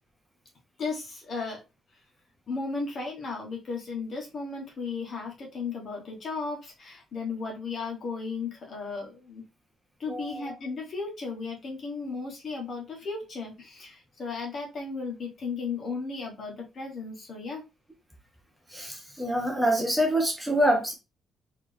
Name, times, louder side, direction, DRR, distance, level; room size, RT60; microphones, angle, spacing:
voice 1, 0.8-1.6 2.5-9.4 10.0-17.6, left 4 dB, 45° left, 1.4 m, -35 dB
voice 2, 18.7-20.9, equal, 5° right, 0.8 m, -25 dB
4.2 x 3.1 x 3.4 m
cardioid pair, 140°, 0 cm